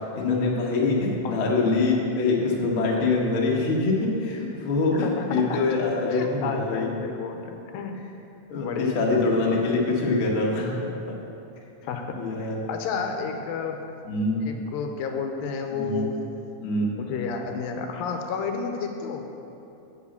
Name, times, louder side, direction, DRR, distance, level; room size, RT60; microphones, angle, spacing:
voice 1, 0.0-6.9 8.5-10.8 11.0-11.1 12.1-12.6 14.0-14.4 15.7-16.1 16.6-16.9, left 3 dB, 60° left, -3 dB, 1.4 m, -24 dB
voice 2, 5.0-5.6 6.1-8.0 8.5-9.0 11.8-13.8 14.4-16.2 17.0-19.3, left 5 dB, 90° left, 4 dB, 2.5 m, -31 dB
8.3 x 5.0 x 7.0 m, 2.8 s
omnidirectional pair, 4.0 m